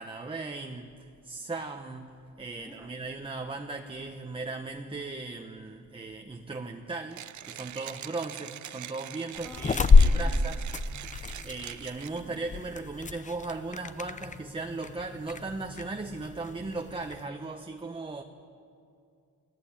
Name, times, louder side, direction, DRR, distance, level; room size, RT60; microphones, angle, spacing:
voice 1, 0.0-18.2, right 3 dB, 15° right, 4 dB, 1.1 m, -38 dB
voice 2, 2.6-2.9 9.4-10.4 12.2-12.6, left 1 dB, 5° left, 2 dB, 3.0 m, -48 dB
Mechanisms, 7.1-12.4, right 12 dB, 65° right, 0.7 m, -43 dB
sound 1, 9.4-17.2, left 4 dB, 25° left, 0.7 m, -27 dB
29.5 x 20.0 x 8.7 m, 2.5 s
wide cardioid pair, 155°, 31 cm